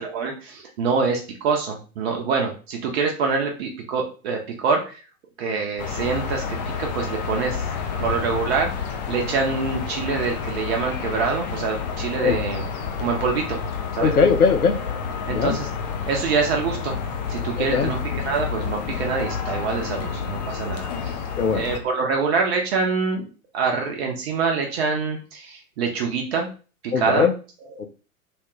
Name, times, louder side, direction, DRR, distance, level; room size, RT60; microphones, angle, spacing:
voice 1, 0.0-5.0 5.4-7.6 8.0-8.7 9.1-12.7 13.0-13.6 14.0-14.1 15.3-15.7 16.1-17.0 17.3-21.2 21.5-23.3 23.5-26.5 26.8-27.3 27.7-27.8, right 5 dB, 45° right, 1 dB, 0.8 m, -25 dB
sound 1, 5.8-21.8, left 6 dB, 30° left, 0.4 m, -29 dB
voice 2, 14.0-14.7 15.3-15.6 17.6-17.9 21.4-21.7 26.9-27.3 27.8-27.9, left 5 dB, 90° left, 7 dB, 0.6 m, -20 dB
3.1 x 2.2 x 3.0 m, 0.36 s
figure-of-eight pair, 100°, 44 cm